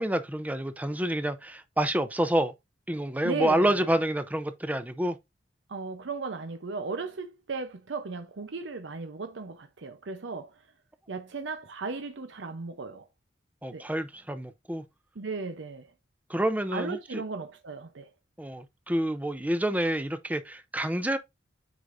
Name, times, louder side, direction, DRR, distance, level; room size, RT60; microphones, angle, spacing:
voice 1, 0.0-2.5 2.9-5.2 13.6-14.8 16.3-17.2 18.4-21.2, right 1 dB, 10° right, 0.6 m, -28 dB
voice 2, 3.2-3.9 5.7-10.6 11.1-13.1 13.7-13.9 15.2-15.9 16.7-18.1, right 4 dB, 85° right, 0.7 m, -36 dB
8.0 x 5.0 x 2.6 m
head